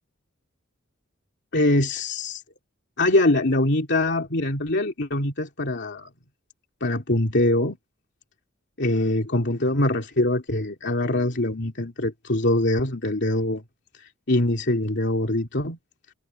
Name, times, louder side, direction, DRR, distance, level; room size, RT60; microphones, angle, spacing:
voice 1, 1.5-2.4 3.0-6.1 6.8-7.8 8.8-13.6 14.3-15.8, left 1 dB, 55° left, 2.8 m, -23 dB
head